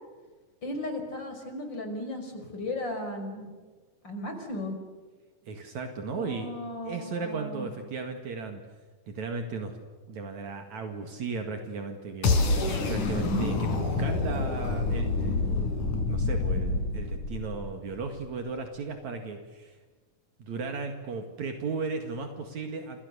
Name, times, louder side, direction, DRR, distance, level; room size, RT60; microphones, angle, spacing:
voice 1, 0.6-3.5 4.0-4.8 6.1-7.7 13.1-13.5, left 1 dB, 35° left, 5 dB, 5.8 m, -35 dB
voice 2, 5.5-6.5 6.8-8.6 9.1-9.8 10.1-12.4 12.9-15.5 16.1-19.8 20.4-23.0, right 4 dB, 65° right, 5 dB, 3.3 m, -35 dB
sound 1, 12.2-18.2, left 3 dB, 75° left, 5.1 m, -27 dB
29.5 x 28.5 x 7.0 m, 1.4 s
omnidirectional pair, 3.6 m